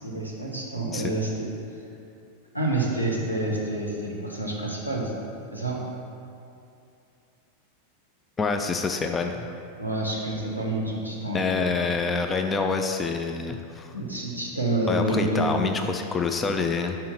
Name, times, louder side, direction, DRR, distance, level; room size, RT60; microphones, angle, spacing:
voice 1, 0.0-1.5 2.5-5.1 5.5-5.8 9.8-11.5 13.9-15.6, right 2 dB, 90° left, -3 dB, 1.1 m, -28 dB
voice 2, 8.4-9.5 11.3-13.9 14.9-17.0, left 4 dB, 20° left, 5 dB, 0.4 m, -26 dB
5.6 x 4.4 x 5.8 m, 2.6 s
figure-of-eight pair, 90°, 0 cm